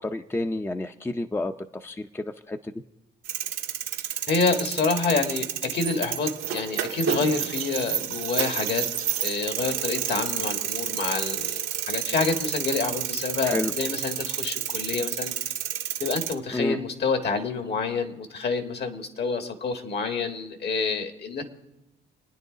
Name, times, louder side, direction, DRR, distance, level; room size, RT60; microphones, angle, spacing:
voice 1, 0.0-1.5 1.8-2.7 13.4-13.7 16.5-16.8, left 2 dB, 10° left, 7 dB, 0.6 m, -29 dB
sound 1, 3.2-16.3, right 10 dB, 90° right, 1.5 m, -30 dB
voice 2, 4.3-8.8 9.2-11.6 11.9-15.3 16.0-21.4, left 4 dB, 55° left, 5 dB, 1.9 m, -27 dB
29.5 x 9.9 x 4.0 m, 0.94 s
cardioid pair, 90°, 20 cm